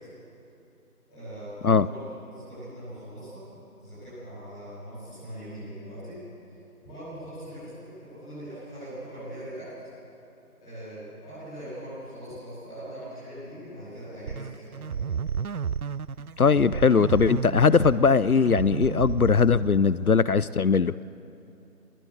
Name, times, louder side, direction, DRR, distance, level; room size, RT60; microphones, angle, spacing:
voice 1, 1.1-3.4 3.8-6.1 6.4-6.5 6.8-9.6 10.6-14.9, right 1 dB, ahead, -17 dB, 2.9 m, -41 dB
sound 1, 14.3-20.1, right 6 dB, 70° right, 0.5 m, -32 dB
voice 2, 16.4-20.9, left 5 dB, 70° left, 18 dB, 0.6 m, -20 dB
21.0 x 19.5 x 8.8 m, 2.8 s
figure-of-eight pair, 170°, 46 cm